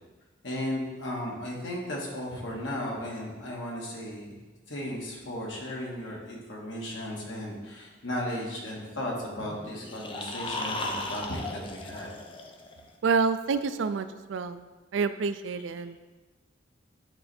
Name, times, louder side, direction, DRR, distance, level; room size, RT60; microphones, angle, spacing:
voice 1, 0.4-12.1, left 1 dB, 85° left, -3 dB, 1.8 m, -35 dB
sound 1, 9.8-12.9, left 2 dB, 25° left, 0.5 m, -36 dB
voice 2, 13.0-16.0, right 5 dB, 80° right, 11 dB, 0.4 m, -28 dB
9.9 x 3.3 x 4.2 m, 1.2 s
head